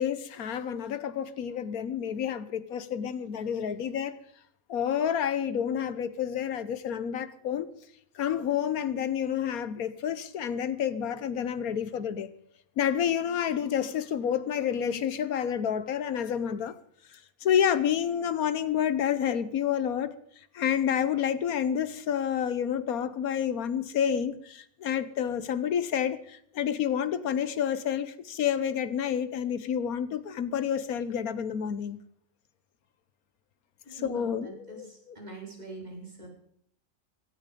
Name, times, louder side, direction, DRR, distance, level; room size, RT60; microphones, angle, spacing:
voice 1, 0.0-4.2 4.7-7.7 8.1-12.3 12.8-16.8 17.1-32.0 34.0-34.8, left 9 dB, 90° left, 1.5 m, -29 dB
voice 2, 33.9-36.3, right 3 dB, 30° right, 5.0 m, -44 dB
17.0 x 12.5 x 5.3 m
omnidirectional pair, 1.5 m